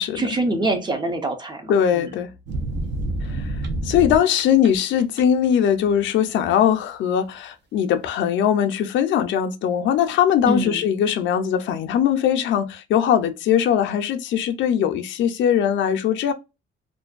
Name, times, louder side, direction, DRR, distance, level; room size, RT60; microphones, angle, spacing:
voice 1, 0.2-2.1 10.5-10.9, right 2 dB, 25° right, 0.5 m, -25 dB
voice 2, 1.7-2.3 3.3-3.6 3.8-16.3, left 9 dB, 75° left, 0.4 m, -20 dB
sound 1, 2.5-4.7 5.0-5.4, right 1 dB, 65° right, 0.6 m, -27 dB
2.5 x 2.2 x 2.3 m
cardioid pair, 145°, 19 cm